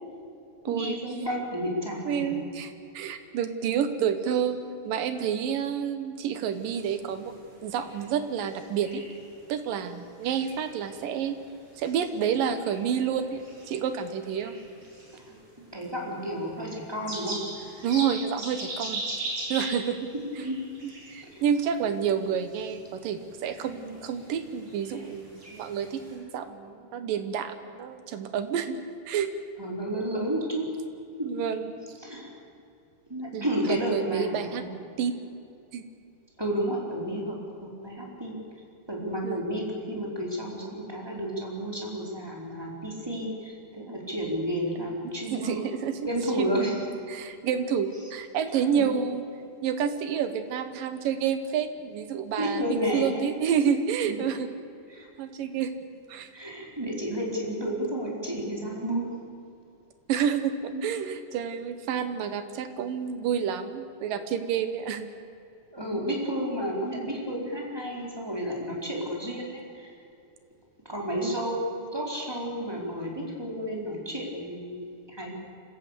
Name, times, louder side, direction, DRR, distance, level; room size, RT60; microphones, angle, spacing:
voice 1, 0.7-2.3 15.1-15.4 15.7-17.4 20.4-20.6 21.2-21.4 29.6-30.7 31.2-31.3 32.0-32.3 33.1-34.7 36.4-38.4 38.9-45.7 46.0-46.8 48.5-48.9 52.4-53.2 54.0-54.1 54.9-55.1 56.3-59.0 60.7-60.8 65.7-69.9 70.8-75.3, equal, 5° right, -2 dB, 4.0 m, -31 dB
voice 2, 2.0-2.7 2.9-7.3 7.6-9.0 9.5-11.4 11.8-14.6 17.8-19.0 19.5-20.1 20.8-28.8 29.1-29.3 31.2-31.7 33.3-34.6 35.0-35.2 35.7-35.8 39.2-39.4 44.8-44.9 45.3-46.0 46.4-46.7 47.1-49.2 49.6-54.5 55.2-55.7 56.1-56.3 60.1-65.1 71.2-71.4, right 8 dB, 65° right, 9 dB, 2.6 m, -29 dB
sound 1, 6.5-26.2, right 2 dB, 30° right, 7.7 m, -42 dB
26.0 x 15.5 x 8.4 m, 2.6 s
omnidirectional pair, 4.8 m